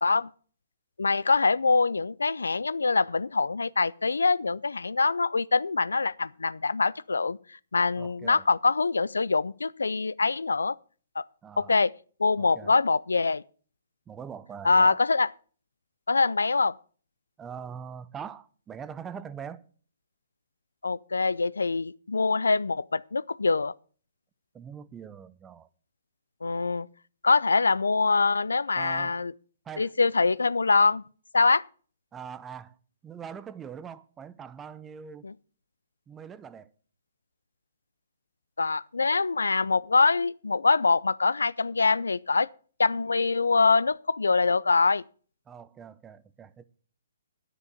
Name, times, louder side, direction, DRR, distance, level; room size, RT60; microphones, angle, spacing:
voice 1, 1.0-7.4 7.7-10.8 11.2-11.3 11.6-11.9 12.2-13.4 14.6-15.3 16.1-16.7 20.8-23.7 26.4-26.9 27.2-29.3 29.8-31.0 31.3-31.6 35.2-35.3 38.6-42.5 42.8-45.0, left 4 dB, 80° left, 0.4 m, -24 dB
voice 2, 8.0-8.4 11.4-11.8 12.4-12.8 14.1-15.0 17.4-19.6 24.5-25.7 28.8-29.2 29.6-29.9 32.1-32.8 33.0-35.3 36.1-36.7 45.5-46.6, right 7 dB, 15° right, 0.7 m, -42 dB
10.0 x 10.0 x 5.0 m
figure-of-eight pair, 135°, 0 cm